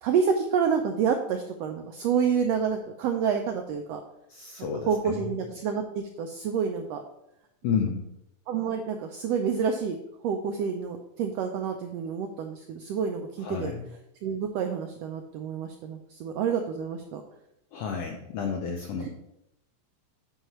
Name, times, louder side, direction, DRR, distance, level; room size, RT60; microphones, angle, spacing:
voice 1, 0.0-4.0 4.9-7.0 8.5-10.0 10.2-13.7 14.2-17.2 19.0-19.1, right 6 dB, 85° right, 4 dB, 1.4 m, -28 dB
voice 2, 4.3-5.3 7.6-8.0 13.4-13.9 17.7-19.1, left 6 dB, 85° left, 3 dB, 1.4 m, -31 dB
8.0 x 5.6 x 3.0 m, 0.83 s
omnidirectional pair, 3.4 m